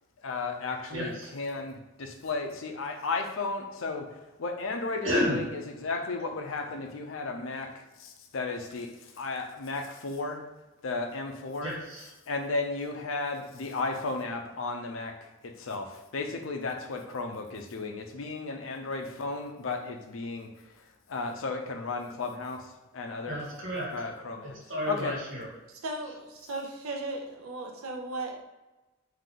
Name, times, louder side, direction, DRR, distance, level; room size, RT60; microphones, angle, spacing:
voice 1, 0.2-10.5 10.8-11.7 12.3-23.5 23.9-24.6 24.9-25.2, left 3 dB, 70° left, 4 dB, 0.5 m, -34 dB
voice 2, 0.9-1.3 5.0-5.4 11.6-12.1 23.3-24.1 24.7-25.5, equal, 65° right, -5 dB, 1.4 m, -31 dB
voice 3, 25.8-28.5, right 2 dB, 90° right, 1 dB, 0.8 m, -36 dB
3.7 x 2.7 x 3.7 m, 1.1 s
head